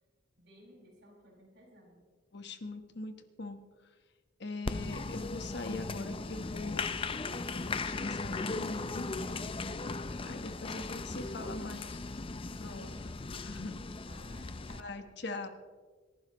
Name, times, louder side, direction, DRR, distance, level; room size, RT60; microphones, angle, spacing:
voice 1, 0.4-2.1 9.8-12.2 12.5-13.2 13.9-15.1, equal, 65° right, -4 dB, 5.8 m, -58 dB
voice 2, 2.3-3.6 4.4-7.0 7.5-9.1 10.2-12.0 12.6-12.9 13.4-13.8 14.8-15.5, left 2 dB, 65° left, 8 dB, 1.2 m, -42 dB
Applause, 4.7-14.8, left 3 dB, 30° left, 0.5 m, -37 dB
27.0 x 11.5 x 3.1 m, 1.5 s
head